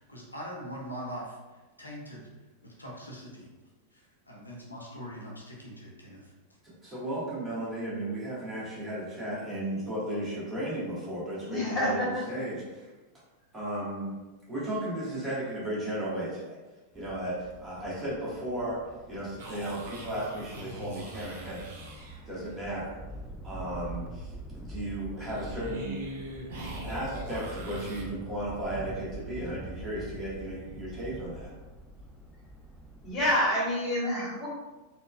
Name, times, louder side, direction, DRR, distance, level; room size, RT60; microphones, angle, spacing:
voice 1, 0.0-2.3 2.6-3.5 3.9-6.3, equal, 85° left, -4 dB, 0.6 m, -42 dB
voice 2, 6.6-12.9 13.5-14.2 14.5-16.6 16.9-18.8 19.1-21.8 22.3-23.0 23.4-24.3 24.6-26.0 26.8-31.5, right 1 dB, 15° right, -8 dB, 1.3 m, -35 dB
voice 3, 11.5-12.2 33.0-34.5, equal, 20° left, -6 dB, 1.3 m, -27 dB
sound 1, 16.9-33.4, right 1 dB, ahead, 0.3 m, -44 dB
sound 2, 19.4-22.7 25.2-28.0, right 1 dB, 55° right, 0.7 m, -42 dB
3.9 x 2.2 x 2.2 m, 1.2 s
figure-of-eight pair, 90°, 0 cm